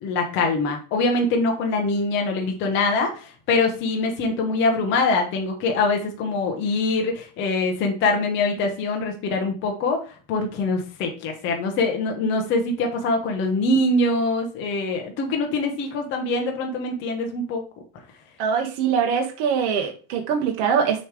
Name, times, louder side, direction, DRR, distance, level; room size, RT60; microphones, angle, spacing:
voice 1, 0.0-17.6, left 3 dB, 25° left, 2 dB, 0.8 m, -24 dB
voice 2, 18.4-21.0, right 7 dB, 45° right, 2 dB, 0.9 m, -23 dB
6.9 x 3.1 x 4.8 m, 0.37 s
cardioid pair, 180°, 46 cm